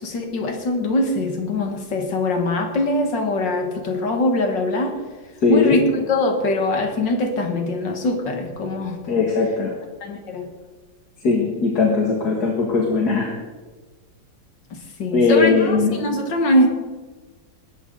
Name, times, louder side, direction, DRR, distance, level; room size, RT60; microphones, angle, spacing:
voice 1, 0.0-5.0 5.5-9.2 10.0-10.5 14.7-16.7, left 1 dB, 85° left, 4 dB, 2.4 m, -22 dB
voice 2, 5.4-5.8 9.1-9.8 11.2-13.3 15.1-16.1, left 4 dB, 60° left, -1 dB, 2.4 m, -19 dB
21.5 x 13.5 x 4.0 m, 1.3 s
omnidirectional pair, 1.9 m